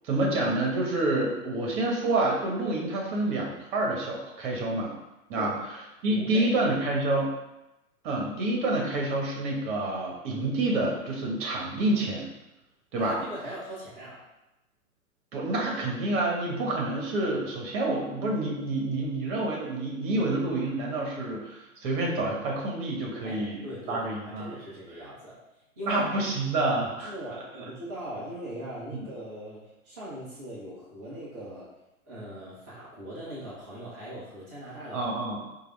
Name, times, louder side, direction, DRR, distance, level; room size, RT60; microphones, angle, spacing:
voice 1, 0.0-4.9 5.3-5.5 6.0-7.3 8.0-12.3 12.9-13.2 15.3-24.5 25.8-27.1 28.9-29.1 34.9-35.4, right 2 dB, 35° right, -1 dB, 1.1 m, -28 dB
voice 2, 6.1-6.5 13.0-14.2 23.2-25.4 25.8-26.0 27.0-31.7 32.1-35.1, right 1 dB, 15° right, -9 dB, 0.3 m, -40 dB
4.7 x 2.4 x 3.2 m, 0.96 s
figure-of-eight pair, 105°, 42 cm